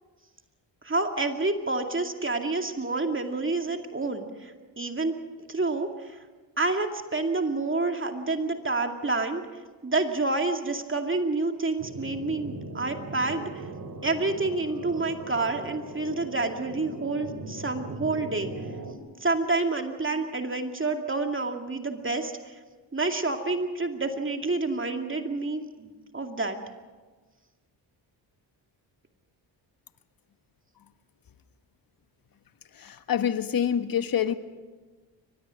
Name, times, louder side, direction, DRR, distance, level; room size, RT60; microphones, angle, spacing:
voice 1, 0.8-5.1 5.5-6.2 6.6-9.4 9.8-13.5 14.0-18.5 19.2-22.6 22.9-26.6, right 3 dB, 25° right, 4 dB, 2.4 m, -28 dB
sound 1, 11.8-18.9, right 3 dB, 50° right, 3.4 m, -39 dB
voice 2, 32.8-34.3, left 9 dB, 45° left, 10 dB, 1.4 m, -26 dB
24.0 x 20.0 x 6.4 m, 1.4 s
supercardioid pair, 50°, 47 cm